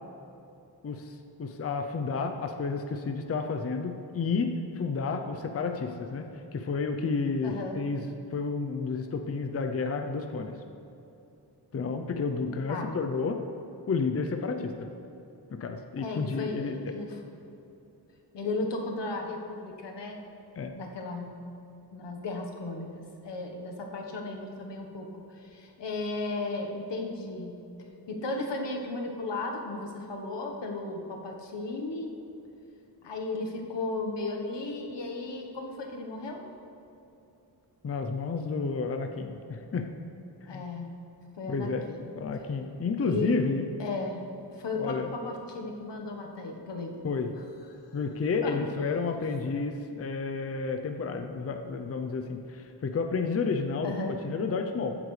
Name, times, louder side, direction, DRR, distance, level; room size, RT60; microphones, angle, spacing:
voice 1, 0.8-6.3 6.5-10.6 11.7-13.4 13.9-14.9 15.5-16.9 20.6-20.7 37.8-39.9 40.5-40.6 41.5-41.9 42.1-43.6 44.8-45.1 47.0-47.3 47.9-53.9 54.2-55.0, left 4 dB, 35° left, 5 dB, 0.5 m, -31 dB
voice 2, 7.4-7.8 12.4-12.9 16.0-17.2 18.3-20.2 20.7-21.3 21.9-27.5 28.1-32.1 33.0-36.4 40.5-40.9 41.4-42.1 43.0-43.4 43.8-44.2 44.5-47.0 48.4-48.7 53.8-54.2, left 2 dB, 85° left, 2 dB, 1.3 m, -35 dB
14.5 x 8.8 x 3.2 m, 2.8 s
wide cardioid pair, 175°, 41 cm